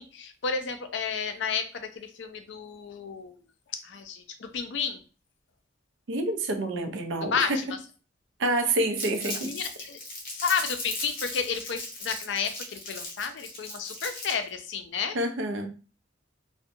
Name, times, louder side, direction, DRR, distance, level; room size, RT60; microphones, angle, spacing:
voice 1, 0.0-3.4 3.7-5.0 7.2-7.8 9.4-10.0 10.3-15.2, left 6 dB, 70° left, 8 dB, 0.4 m, -32 dB
voice 2, 6.1-7.6 8.4-9.5 15.1-15.7, right 2 dB, 75° right, 6 dB, 0.5 m, -27 dB
Crumpling crinkling, 9.0-14.5, left 2 dB, 45° left, 0.9 m, -37 dB
2.7 x 2.1 x 2.5 m, 0.36 s
head